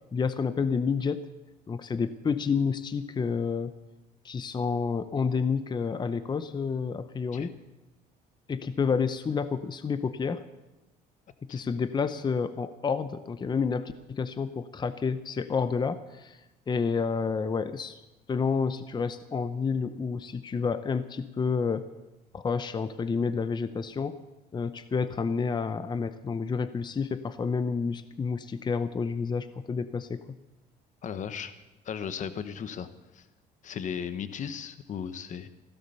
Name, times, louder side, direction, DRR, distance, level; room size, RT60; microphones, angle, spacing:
voice 1, 0.1-1.3 1.7-3.7 4.2-7.5 8.5-10.4 11.5-16.4 16.7-18.0 18.3-21.9 22.3-24.2 24.5-30.2, left 5 dB, 25° left, 12 dB, 0.7 m, -29 dB
voice 2, 31.0-31.5 31.8-32.9 33.1-33.3 33.6-35.5, left 7 dB, 50° left, 12 dB, 1.1 m, -36 dB
16.0 x 12.0 x 6.9 m, 1.0 s
cardioid pair, 110°, 17 cm